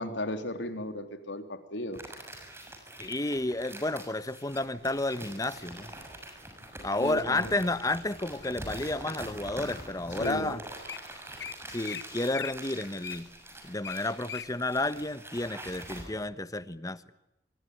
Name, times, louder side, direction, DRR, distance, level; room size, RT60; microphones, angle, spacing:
voice 1, 0.0-2.0 7.0-7.5 10.2-10.5, left 1 dB, 90° left, 8 dB, 3.4 m, -35 dB
sound 1, 1.9-16.0, right 1 dB, 15° right, 6.6 m, -44 dB
voice 2, 3.0-5.9 6.8-10.6 11.7-13.3 13.6-17.0, left 2 dB, 20° left, 14 dB, 1.2 m, -31 dB
Wild animals, 4.6-5.3 6.0-6.3 6.8-7.2 7.8-8.7 9.3-9.4 10.0-10.1 10.2-10.4 10.7-11.0 11.4-11.5 11.8-12.0 12.3-14.5 14.9-15.0, left 8 dB, 75° left, 1.9 m, -41 dB
26.5 x 23.0 x 9.5 m, 0.90 s
head